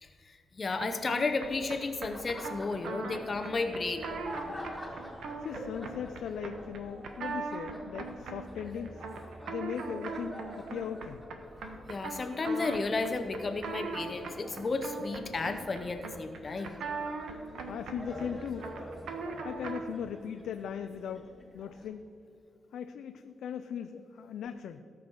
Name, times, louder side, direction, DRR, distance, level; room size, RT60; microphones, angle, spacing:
voice 1, 0.0-4.1 11.9-16.8, left 3 dB, 35° left, 6 dB, 0.8 m, -33 dB
sound 1, 0.8-20.0, right 4 dB, 85° right, 1.3 m, -41 dB
Laughter, 2.0-21.9, equal, 10° left, 2.4 m, -47 dB
voice 2, 5.4-9.0 9.5-11.2 17.7-18.7 19.4-21.3 21.5-22.1 22.7-24.8, left 8 dB, 90° left, 8 dB, 0.5 m, -39 dB
18.0 x 6.1 x 4.7 m, 2.6 s
cardioid pair, 110°, 0 cm